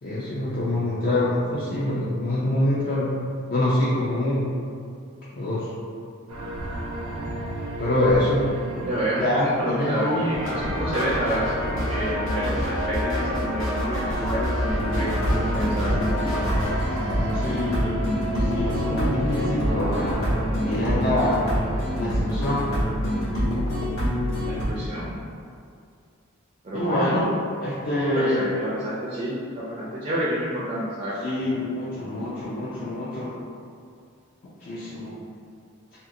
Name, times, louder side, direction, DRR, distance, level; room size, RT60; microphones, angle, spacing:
voice 1, 0.0-3.1 3.5-4.5 5.4-5.7 7.8-8.5 9.2-10.3 17.3-20.2 20.6-21.4 22.0-22.7 26.7-27.3 27.6-28.4 31.2-33.3 34.6-35.2, left 1 dB, 45° left, -9 dB, 0.4 m, -25 dB
sound 1, 6.3-21.9, right 1 dB, 85° right, 0.6 m, -33 dB
voice 2, 8.8-15.9 24.5-25.2 26.6-27.1 28.1-31.1, right 1 dB, 35° right, -7 dB, 0.4 m, -29 dB
sound 2, 10.3-16.8, left 1 dB, 70° left, 0.7 m, -28 dB
Warm guitar rhythm Intro, 14.7-24.7, equal, 85° left, 1.2 m, -26 dB
2.8 x 2.7 x 2.5 m, 2.3 s
head